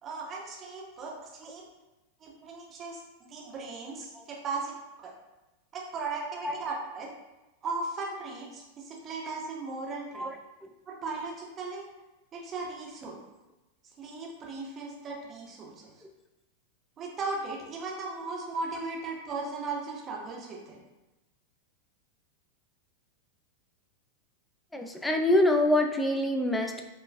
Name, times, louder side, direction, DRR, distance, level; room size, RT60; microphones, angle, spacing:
voice 1, 0.0-1.7 2.2-5.1 5.7-7.1 7.6-10.3 10.9-11.8 12.3-13.2 14.0-16.0 17.0-20.8, right 3 dB, 30° right, -1 dB, 0.7 m, -37 dB
voice 2, 24.7-26.8, left 1 dB, 5° left, 4 dB, 0.3 m, -25 dB
4.6 x 2.3 x 2.2 m, 1.0 s
figure-of-eight pair, 90°, 0 cm